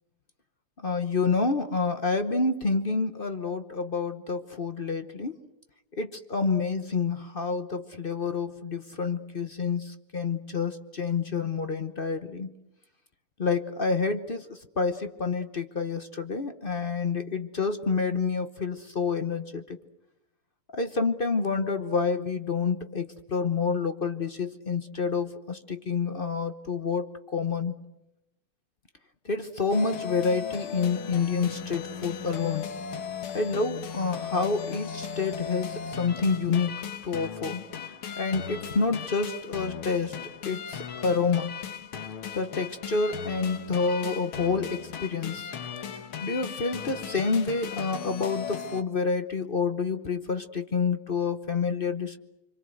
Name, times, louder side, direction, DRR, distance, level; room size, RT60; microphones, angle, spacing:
voice 1, 0.8-5.3 5.9-12.5 13.4-19.8 20.7-27.7 29.2-32.7 33.3-36.7 37.0-37.6 38.2-40.1 40.4-41.5 42.3-45.5 46.2-52.2, left 4 dB, 45° left, 9 dB, 0.7 m, -28 dB
sound 1, 29.7-48.8, left 8 dB, 75° left, 2.2 m, -37 dB
26.5 x 25.0 x 7.9 m, 0.89 s
omnidirectional pair, 2.4 m